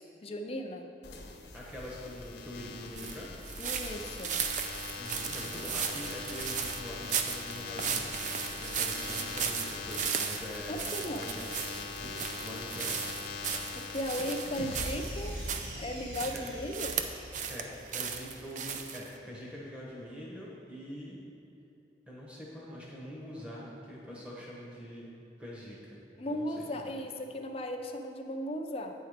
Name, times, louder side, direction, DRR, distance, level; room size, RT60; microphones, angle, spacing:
voice 1, 0.2-0.9 3.6-4.4 10.7-11.3 13.8-15.4 15.8-16.9 24.1-24.2 26.2-28.9, left 1 dB, 35° left, 4 dB, 0.5 m, -36 dB
sound 1, 1.0-15.6, left 4 dB, 70° left, 0.8 m, -42 dB
voice 2, 1.5-3.3 5.0-13.0 16.3-16.4 17.5-21.2 22.1-25.1 25.4-26.0 26.2-26.9, equal, 5° right, -5 dB, 1.1 m, -44 dB
sound 2, 3.0-15.7 16.1-17.6 17.9-19.1, right 7 dB, 45° right, 0.4 m, -36 dB
sound 3, 14.6-18.9, equal, 75° right, 1.2 m, -42 dB
8.8 x 4.6 x 5.0 m, 2.8 s
head